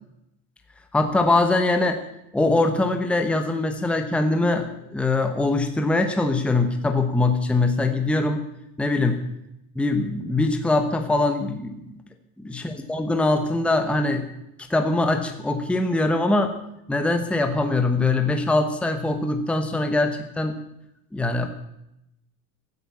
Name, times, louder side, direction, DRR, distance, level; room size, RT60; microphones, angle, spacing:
voice 1, 0.9-2.0 2.3-8.4 8.8-9.3 9.7-12.0 12.4-14.3 14.7-16.5 16.9-20.6 21.1-21.5, left 2 dB, 5° left, 6 dB, 1.0 m, -22 dB
15.0 x 9.3 x 8.4 m, 0.84 s
cardioid pair, 160°, 41 cm